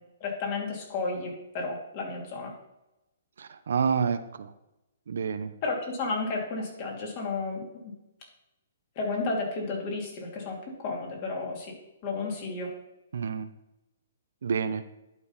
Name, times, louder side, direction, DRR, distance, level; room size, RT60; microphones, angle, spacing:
voice 1, 0.0-2.5 5.6-7.9 9.0-11.7 12.0-12.7, left 3 dB, 40° left, -1 dB, 2.8 m, -32 dB
voice 2, 3.4-4.5 5.1-5.5 13.1-13.5 14.4-14.8, right 6 dB, 75° right, 12 dB, 0.6 m, -28 dB
11.0 x 3.9 x 5.6 m, 0.93 s
hypercardioid pair, 145°, 0 cm